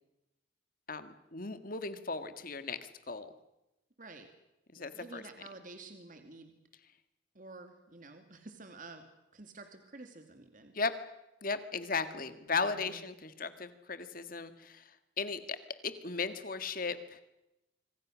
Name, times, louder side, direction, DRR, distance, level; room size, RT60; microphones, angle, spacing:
voice 1, 0.9-2.8 3.1-3.3 4.7-5.2 10.7-10.9 11.4-14.8 15.2-15.6 15.8-17.2, left 4 dB, 45° left, 11 dB, 1.8 m, -36 dB
voice 2, 4.0-4.3 4.8-6.5 7.3-9.0 9.3-10.7 12.7-13.0, right 3 dB, 40° right, 6 dB, 2.3 m, -50 dB
25.5 x 25.5 x 6.4 m, 0.92 s
head